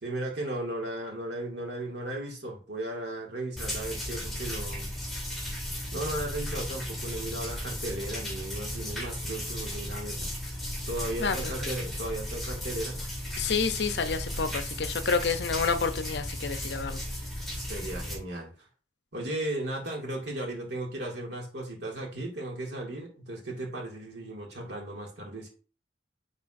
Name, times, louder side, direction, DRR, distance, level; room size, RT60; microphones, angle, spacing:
voice 1, 0.0-4.9 5.9-10.3 10.8-13.0 13.4-13.5 17.5-18.5 19.1-25.5, right 1 dB, 70° right, 2.2 m, -36 dB
sound 1, 3.6-18.2, equal, ahead, 2.1 m, -35 dB
voice 2, 13.4-17.0, left 5 dB, 60° left, 0.6 m, -29 dB
9.7 x 4.0 x 2.6 m
head